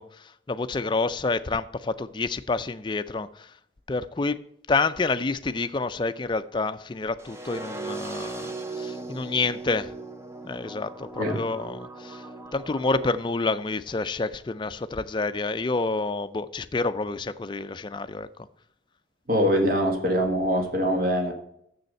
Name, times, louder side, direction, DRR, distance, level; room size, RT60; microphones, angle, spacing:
voice 1, 0.0-3.5 3.9-4.4 4.7-9.9 10.4-12.3 12.5-18.3, left 3 dB, 25° left, 0.4 m, -28 dB
sound 1, 7.2-13.2, right 3 dB, 15° right, 0.6 m, -38 dB
voice 2, 19.3-21.3, equal, 50° right, 1.6 m, -23 dB
7.1 x 6.7 x 7.7 m
head